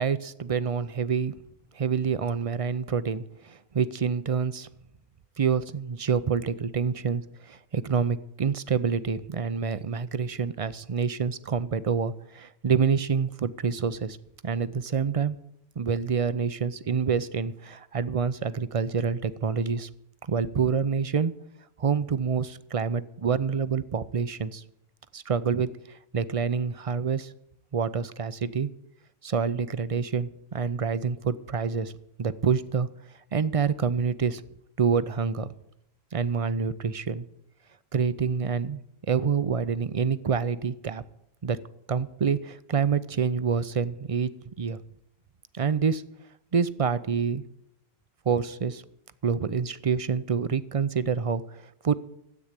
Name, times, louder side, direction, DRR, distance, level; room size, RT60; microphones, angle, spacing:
voice 1, 0.0-1.3 1.7-4.7 5.4-14.2 14.4-15.4 15.8-19.9 20.2-21.4 21.8-24.6 25.1-27.3 27.7-28.7 29.2-31.9 32.2-32.9 33.3-34.4 34.8-35.5 36.1-37.3 37.9-38.8 39.1-41.0 41.4-41.6 41.9-44.3 44.6-44.8 45.5-46.0 46.5-47.4 48.3-48.8 49.2-51.9, right 6 dB, 40° right, 15 dB, 0.5 m, -27 dB
13.5 x 8.5 x 8.2 m, 0.77 s
omnidirectional pair, 1.1 m